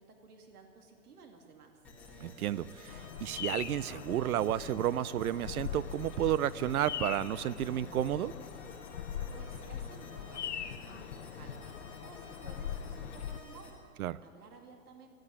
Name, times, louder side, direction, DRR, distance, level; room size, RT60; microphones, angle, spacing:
voice 1, 0.0-1.8 9.3-15.2, right 4 dB, 90° right, 3 dB, 2.5 m, -55 dB
sound 1, 1.8-13.7, left 2 dB, 5° left, 1.3 m, -51 dB
voice 2, 2.2-8.3 14.0-14.2, right 12 dB, 75° right, 19 dB, 0.6 m, -32 dB
Bird vocalization bird call bird song, 2.9-13.4, left 9 dB, 50° left, 0.8 m, -41 dB
13.0 x 12.5 x 8.6 m, 2.4 s
hypercardioid pair, 170°, 44 cm